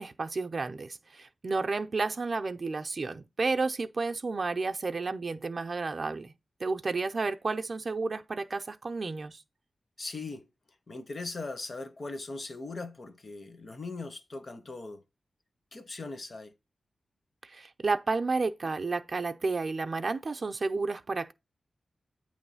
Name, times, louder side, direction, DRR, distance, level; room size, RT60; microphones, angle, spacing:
voice 1, 0.0-6.3 6.6-9.4 17.4-21.3, right 3 dB, 40° right, 0.5 m, -31 dB
voice 2, 10.0-10.5 10.9-15.0 15.7-16.5, left 3 dB, 40° left, 0.7 m, -39 dB
8.7 x 3.1 x 5.5 m
wide cardioid pair, 135°, 0 cm